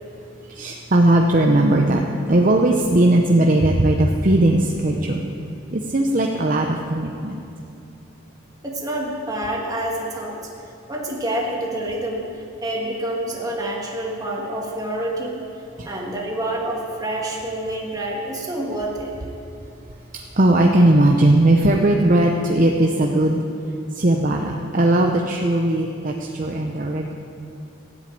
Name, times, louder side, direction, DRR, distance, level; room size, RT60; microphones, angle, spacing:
voice 1, 0.5-5.2 5.7-7.4 15.8-15.9 20.1-23.4 23.9-27.1, right 1 dB, 40° right, 1 dB, 0.8 m, -18 dB
voice 2, 8.6-10.4 10.9-12.3 12.6-15.4 15.9-19.1, right 1 dB, 20° right, -2 dB, 2.0 m, -27 dB
13.5 x 8.2 x 9.1 m, 2.7 s
head